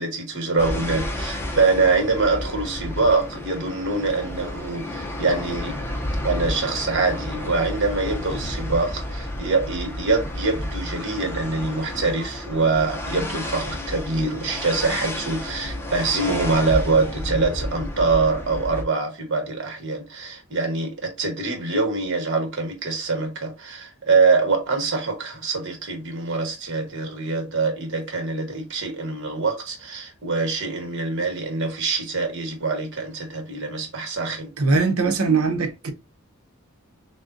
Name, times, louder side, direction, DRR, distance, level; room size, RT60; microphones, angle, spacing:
voice 1, 0.0-5.8 6.2-34.5, right 3 dB, 55° right, 1.2 m, -24 dB
sound 1, 0.6-18.8, left 1 dB, 10° left, 0.5 m, -31 dB
voice 2, 34.6-35.9, right 4 dB, 85° right, 0.8 m, -21 dB
6.3 x 2.2 x 2.5 m
head